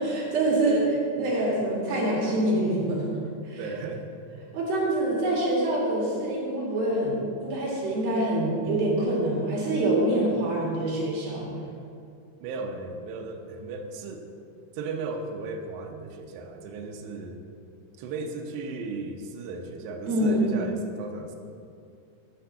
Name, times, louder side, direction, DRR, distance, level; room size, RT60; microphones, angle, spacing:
voice 1, 0.0-3.1 3.5-3.6 4.5-11.5 20.1-20.5, right 1 dB, 55° right, -4 dB, 3.5 m, -25 dB
voice 2, 3.6-4.2 12.4-14.3 14.7-17.4 18.0-21.4, right 3 dB, 75° right, 3 dB, 2.9 m, -36 dB
10.5 x 6.5 x 7.8 m, 2.4 s
omnidirectional pair, 5.5 m